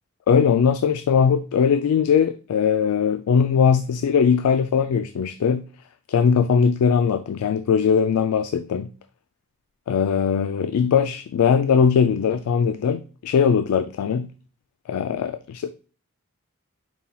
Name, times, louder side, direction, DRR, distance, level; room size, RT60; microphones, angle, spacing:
voice 1, 0.3-5.6 6.1-8.9 9.9-14.3 14.9-15.7, left 6 dB, 85° left, 10 dB, 0.3 m, -20 dB
5.4 x 4.2 x 2.3 m, 0.38 s
head